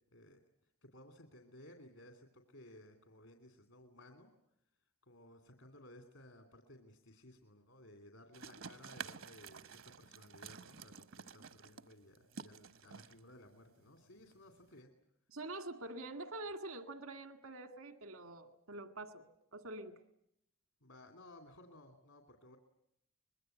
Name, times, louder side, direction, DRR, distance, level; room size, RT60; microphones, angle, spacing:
voice 1, 0.1-4.3 5.0-14.9 20.8-22.6, left 1 dB, 75° left, 5 dB, 2.8 m, -58 dB
sound 1, 8.3-14.8, right 6 dB, 70° right, 1.0 m, -51 dB
voice 2, 15.3-19.3 19.5-20.0, right 2 dB, 85° right, 8 dB, 2.0 m, -46 dB
25.0 x 21.5 x 9.1 m, 0.77 s
head